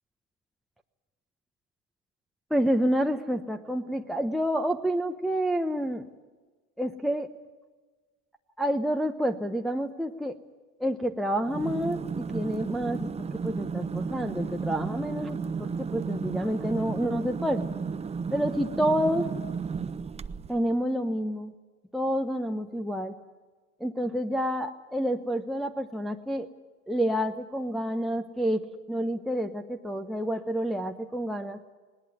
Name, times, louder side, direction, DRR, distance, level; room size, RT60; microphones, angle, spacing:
voice 1, 2.5-6.0 6.8-7.3 8.6-10.4 10.8-17.7 18.3-19.3 20.5-21.5 21.9-23.2 23.8-26.5 26.9-31.6, equal, ahead, 4 dB, 0.9 m, -29 dB
sound 1, 11.4-20.7, right 5 dB, 15° right, 0.6 m, -33 dB
20.0 x 18.5 x 9.4 m, 1.4 s
hypercardioid pair, 85°, 41 cm